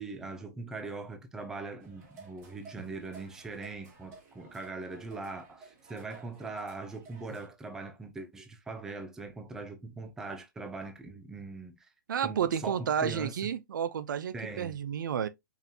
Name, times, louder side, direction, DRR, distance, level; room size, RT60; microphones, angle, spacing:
voice 1, 0.0-11.7 12.2-13.4 14.3-14.8, right 3 dB, 5° right, 0.4 m, -41 dB
sound 1, 1.8-7.5, right 3 dB, 25° right, 1.3 m, -53 dB
voice 2, 12.1-15.3, right 8 dB, 65° right, 0.5 m, -31 dB
5.5 x 2.6 x 2.7 m
hypercardioid pair, 155°, 11 cm